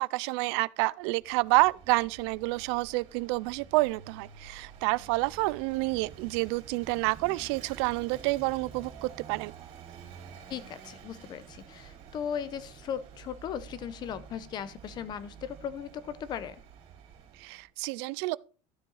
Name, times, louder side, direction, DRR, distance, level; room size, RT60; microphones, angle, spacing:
voice 1, 0.0-9.5 17.4-18.4, right 23 dB, 75° right, 0.4 m, -28 dB
Vehicle / Engine, 1.2-17.7, right 7 dB, 40° right, 3.3 m, -49 dB
voice 2, 10.5-16.6, left 8 dB, 30° left, 0.7 m, -37 dB
13.0 x 7.6 x 4.0 m
cardioid pair, 170°, 14 cm